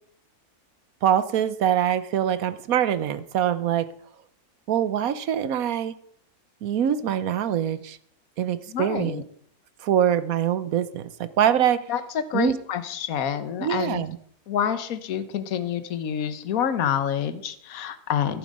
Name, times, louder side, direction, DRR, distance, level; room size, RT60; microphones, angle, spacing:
voice 1, 1.0-3.9 4.7-6.0 6.6-8.0 8.4-9.2 9.8-11.9 12.3-12.6 13.6-14.2, right 9 dB, 65° right, 14 dB, 1.2 m, -24 dB
voice 2, 8.7-9.2 11.9-14.0 14.5-18.4, left 9 dB, 65° left, 12 dB, 1.4 m, -27 dB
14.5 x 8.5 x 5.3 m, 0.63 s
omnidirectional pair, 1.7 m